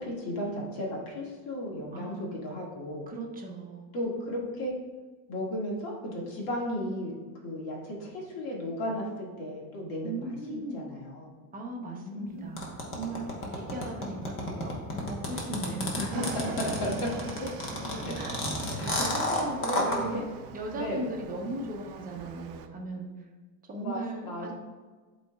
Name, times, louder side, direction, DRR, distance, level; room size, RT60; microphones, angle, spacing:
voice 1, 0.0-3.0 3.9-4.7 5.3-7.1 7.4-10.2 10.5-11.3 11.8-12.6 14.4-14.6 16.0-16.2 16.6-16.9 17.2-17.3 18.0-18.1 18.7-18.9 19.6-20.2 20.7-21.0 23.8-24.5, equal, 50° left, -3 dB, 1.9 m, -35 dB
voice 2, 1.9-2.3 3.1-3.9 10.0-10.8 11.5-16.0 16.5-16.6 17.9-18.5 18.8-19.6 19.9-20.3 20.5-23.3 23.7-24.5, right 2 dB, 20° right, 0 dB, 0.8 m, -38 dB
sound 1, 12.6-20.0, left 2 dB, 25° left, 1.1 m, -31 dB
Motorcycle / Engine, 16.1-22.7, right 7 dB, 75° right, 0.7 m, -43 dB
11.0 x 4.2 x 2.3 m, 1.4 s
cardioid pair, 150°, 46 cm